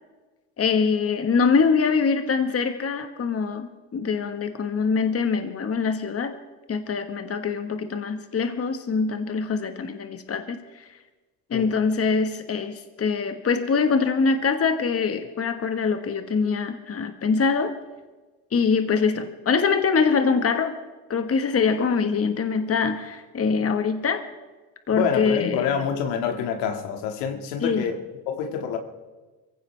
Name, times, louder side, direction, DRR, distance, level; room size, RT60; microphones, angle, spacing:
voice 1, 0.6-6.3 6.7-10.6 11.5-17.7 18.5-20.7 21.1-24.2 24.9-25.8 27.6-27.9, left 5 dB, 35° left, 7 dB, 1.4 m, -24 dB
voice 2, 24.9-28.8, left 7 dB, 75° left, 5 dB, 2.0 m, -27 dB
23.0 x 16.0 x 3.4 m, 1.2 s
supercardioid pair, 70°, 43 cm